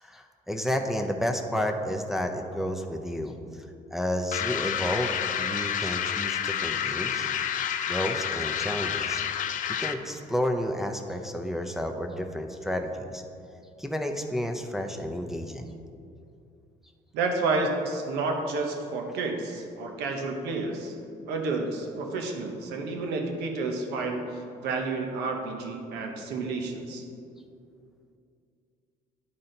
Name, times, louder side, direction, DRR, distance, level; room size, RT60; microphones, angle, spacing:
voice 1, 0.0-3.7 3.9-7.3 7.9-13.2 13.8-15.7, equal, ahead, 2 dB, 0.5 m, -31 dB
sound 1, 4.3-10.1, left 9 dB, 50° left, 0.4 m, -29 dB
voice 2, 17.1-20.9 21.3-24.2 24.6-27.0, right 3 dB, 90° right, 3 dB, 0.9 m, -30 dB
10.5 x 4.2 x 3.9 m, 2.5 s
cardioid pair, 110°, 17 cm